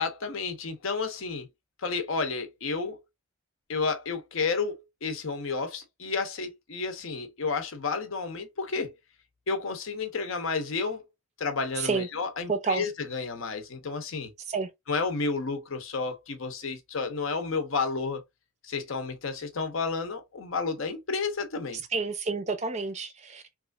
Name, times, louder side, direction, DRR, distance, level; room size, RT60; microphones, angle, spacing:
voice 1, 0.0-1.5 1.8-3.0 3.7-8.9 9.5-11.0 11.4-14.3 14.9-18.2 18.6-21.8, left 4 dB, 70° left, 0.7 m, -31 dB
voice 2, 12.5-12.8 14.5-14.7 21.9-23.4, right 4 dB, 30° right, 0.4 m, -29 dB
3.0 x 2.4 x 2.3 m
head